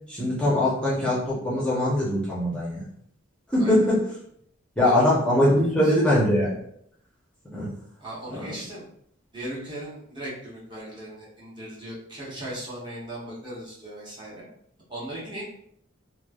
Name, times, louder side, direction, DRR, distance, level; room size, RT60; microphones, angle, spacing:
voice 1, 0.1-2.9 3.5-4.0 4.8-6.6 7.5-7.7 8.3-8.5, left 1 dB, 5° left, -8 dB, 0.6 m, -22 dB
voice 2, 8.0-8.9 9.3-14.4 14.9-15.4, right 1 dB, 25° right, -6 dB, 0.8 m, -37 dB
3.1 x 2.0 x 2.3 m, 0.69 s
head